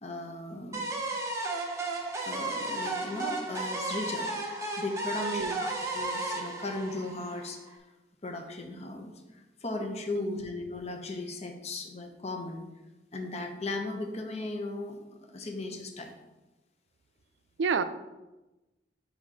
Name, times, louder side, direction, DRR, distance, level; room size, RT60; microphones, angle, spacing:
voice 1, 0.0-0.8 2.3-4.3 4.8-7.8 8.2-12.7 13.1-15.0 15.3-16.1, left 2 dB, 40° left, 4 dB, 0.7 m, -37 dB
sound 1, 0.7-7.7, right 2 dB, 15° right, 0.7 m, -34 dB
voice 2, 5.2-5.6 10.1-10.4 17.6-17.8, right 5 dB, 90° right, 11 dB, 0.4 m, -30 dB
5.0 x 4.2 x 4.8 m, 1.1 s
head